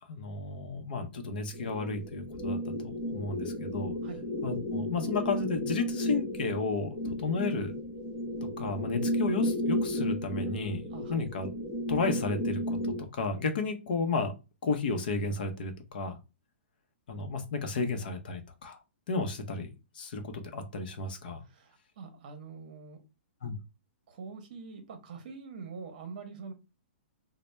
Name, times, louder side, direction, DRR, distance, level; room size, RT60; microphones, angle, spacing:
voice 1, 0.1-3.9 4.4-7.7 8.4-10.8 11.1-11.5 11.9-14.3 14.6-16.2 17.1-18.8 19.1-19.7 19.9-21.4 23.4-23.6, left 4 dB, 50° left, 0.7 m, -33 dB
sound 1, 1.5-13.0, left 1 dB, 5° left, 0.6 m, -33 dB
voice 2, 10.9-11.2 21.4-23.0 24.1-26.5, right 5 dB, 40° right, 0.8 m, -44 dB
4.0 x 2.1 x 3.2 m
hypercardioid pair, 170°, 6 cm